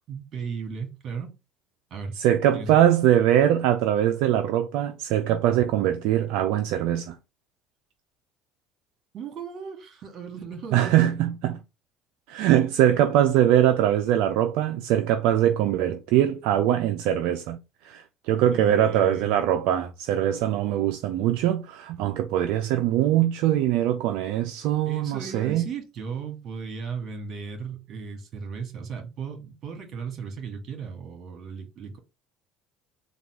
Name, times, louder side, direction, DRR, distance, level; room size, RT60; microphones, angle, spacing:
voice 1, 0.1-1.3 1.9-2.1 2.5-2.7 9.1-11.1 18.5-19.3 24.9-32.0, right 5 dB, 50° right, 1.8 m, -36 dB
voice 2, 2.2-7.2 10.7-11.6 12.3-25.7, right 11 dB, 75° right, 0.4 m, -22 dB
3.9 x 2.4 x 4.6 m
supercardioid pair, 90°, 0 cm